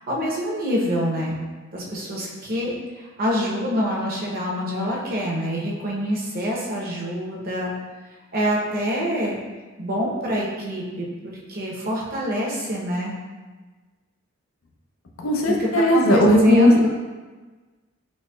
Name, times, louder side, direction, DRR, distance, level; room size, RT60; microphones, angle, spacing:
voice 1, 0.1-1.4 1.7-7.7 8.3-9.4 9.8-13.1 15.5-16.9, equal, 45° right, -4 dB, 0.7 m, -26 dB
voice 2, 15.2-16.8, left 1 dB, 70° left, 0 dB, 0.5 m, -17 dB
4.1 x 3.0 x 2.2 m, 1.3 s
head